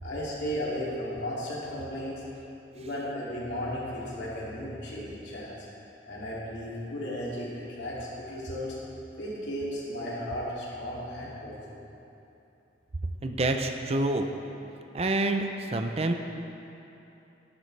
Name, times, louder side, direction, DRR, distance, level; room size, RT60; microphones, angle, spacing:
voice 1, 0.0-2.2 2.7-5.5 6.1-8.8 9.2-11.9, equal, 75° left, -6 dB, 2.7 m, -35 dB
voice 2, 13.2-14.3 14.9-16.1, right 2 dB, 35° right, 5 dB, 0.5 m, -27 dB
12.0 x 11.5 x 3.3 m, 2.9 s
head